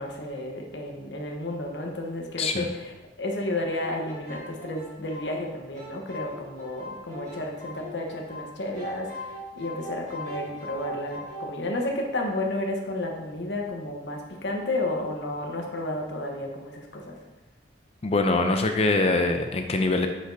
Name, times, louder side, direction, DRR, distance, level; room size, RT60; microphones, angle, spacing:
voice 1, 0.0-17.2, left 1 dB, 85° left, 1 dB, 1.1 m, -32 dB
voice 2, 2.4-2.7 18.0-20.1, left 2 dB, 35° left, 6 dB, 0.5 m, -23 dB
sound 1, 3.6-8.5 8.7-11.5, left 1 dB, 40° right, 2.2 m, -40 dB
9.9 x 5.1 x 2.7 m, 1.1 s
head